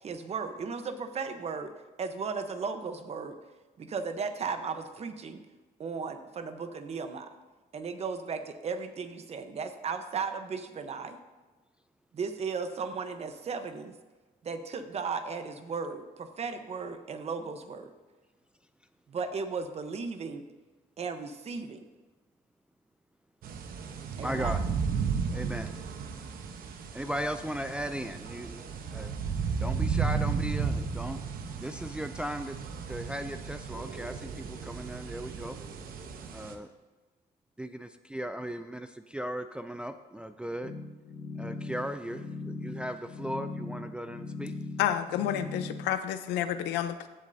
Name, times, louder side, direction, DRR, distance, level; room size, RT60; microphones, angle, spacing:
voice 1, 0.0-1.7 2.0-3.4 3.8-5.4 5.8-7.3 7.7-11.2 12.1-13.9 14.4-17.9 19.1-20.4 21.0-21.8 24.2-24.6, right 5 dB, 40° right, 8 dB, 1.0 m, -35 dB
sound 1, 23.4-36.5, right 5 dB, 60° right, 1.0 m, -34 dB
voice 2, 24.2-24.6 25.3-25.7 26.9-29.1 29.6-31.2 31.6-32.6 32.9-35.6 36.3-36.7 37.6-40.7 41.4-44.5 45.4-45.5, equal, 5° right, 8 dB, 0.4 m, -37 dB
sound 2, 40.6-45.9, left 3 dB, 40° left, 1.6 m, -39 dB
voice 3, 44.8-47.1, left 11 dB, 85° left, 11 dB, 0.7 m, -30 dB
15.5 x 7.4 x 2.7 m, 1.3 s
cardioid pair, 110°, 17 cm